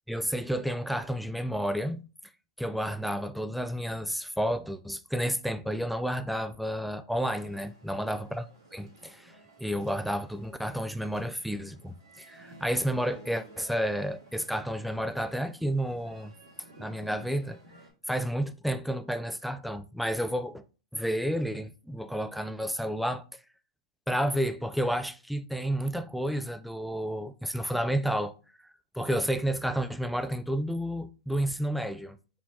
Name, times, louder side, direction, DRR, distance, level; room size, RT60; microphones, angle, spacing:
voice 1, 0.1-2.0 2.6-8.4 8.7-9.3 9.6-16.3 16.8-17.6 18.1-20.6 20.9-23.2 24.1-28.3 28.9-32.2, equal, ahead, 0.3 m, -31 dB
sound 1, 7.2-17.9, right 1 dB, 75° right, 2.3 m, -54 dB
4.2 x 3.8 x 2.8 m
hypercardioid pair, 125°, 3 cm